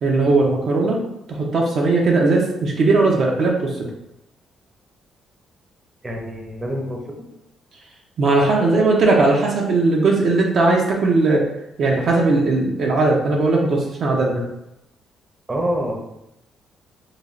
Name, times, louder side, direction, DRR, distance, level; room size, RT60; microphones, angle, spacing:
voice 1, 0.0-1.0 1.3-3.9 8.2-11.4 11.8-14.4, right 3 dB, 60° right, -1 dB, 0.5 m, -18 dB
voice 2, 6.0-7.2 15.5-16.0, equal, 20° right, 0 dB, 0.6 m, -26 dB
3.1 x 2.3 x 2.5 m, 0.85 s
cardioid pair, 90°, 0 cm